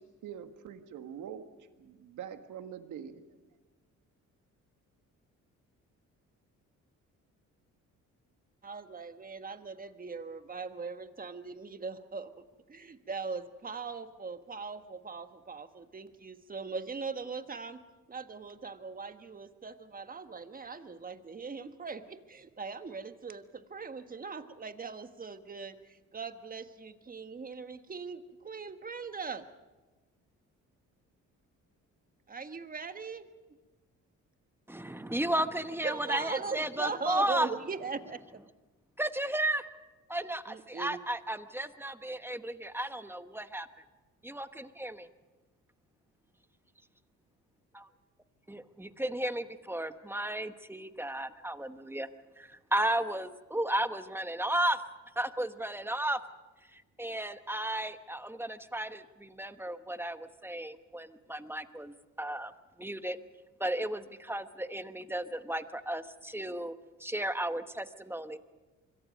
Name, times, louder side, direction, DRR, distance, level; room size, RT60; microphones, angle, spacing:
voice 1, 0.2-1.4 1.8-3.2, right 9 dB, 80° right, 8 dB, 1.7 m, -44 dB
voice 2, 8.6-12.3 12.7-17.8 18.1-29.4 32.3-33.3 35.8-38.2 40.5-41.0, right 4 dB, 30° right, 9 dB, 1.4 m, -40 dB
voice 3, 34.7-37.5 39.0-39.7 40.1-43.7 44.2-45.1 47.7-47.8 48.5-52.1 52.4-54.8 55.2-56.2 56.7-62.5 62.8-63.2 63.6-66.7 67.0-68.4, right 1 dB, 5° right, 10 dB, 1.1 m, -34 dB
25.5 x 23.0 x 5.3 m, 1.2 s
cardioid pair, 90°, 30 cm